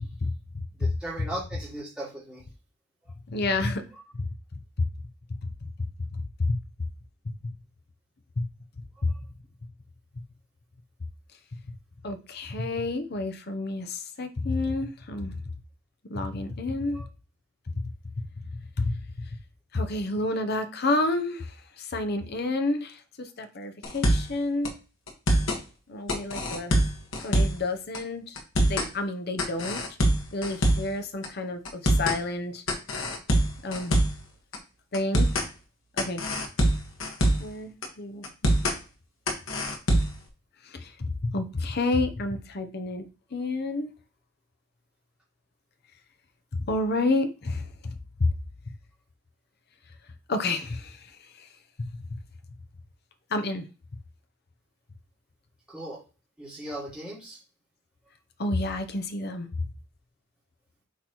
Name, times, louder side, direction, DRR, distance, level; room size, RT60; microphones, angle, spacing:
voice 1, 0.2-0.9 3.3-3.8 4.1-4.3 4.8-4.9 5.4-6.6 8.4-8.5 9.0-9.1 12.0-15.4 16.0-17.0 17.7-17.8 18.8-18.9 19.7-24.7 25.9-26.8 27.2-28.4 28.7-29.8 30.3-32.6 33.6-33.9 34.9-35.3 36.0-36.3 37.4-38.5 40.6-43.9 46.6-48.3 50.3-51.5 53.3-53.7 58.4-59.7, left 2 dB, 55° left, 0.8 m, -30 dB
voice 2, 0.8-2.4 9.1-9.2 16.9-17.1 55.7-56.0 56.4-57.4, right 1 dB, 5° right, 2.3 m, -38 dB
sound 1, 23.8-24.4 24.7-24.8 25.1-25.6 26.1-27.7 27.9-28.0 28.4-28.9 29.4-31.0 31.2-31.3 31.7-32.2 32.7-34.2 34.5-34.6 34.9-35.5 36.0-37.5 37.8-37.9 38.2-38.8 39.3-40.2, right 1 dB, 85° left, 1.6 m, -24 dB
8.2 x 4.0 x 3.1 m
head